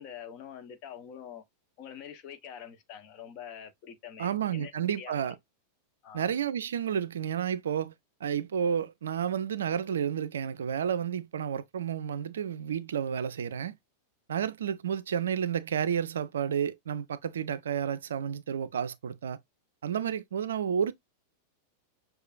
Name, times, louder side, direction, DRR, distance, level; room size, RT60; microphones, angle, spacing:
voice 1, 0.0-1.4 1.8-4.7 5.0-5.2 6.0-6.3, left 8 dB, 40° left, 0.9 m, -45 dB
voice 2, 4.2-5.4 6.1-7.9 8.2-13.8 14.3-19.4 19.8-20.9, right 8 dB, 65° right, 0.4 m, -31 dB
6.5 x 2.4 x 2.4 m
figure-of-eight pair, 90°, 0 cm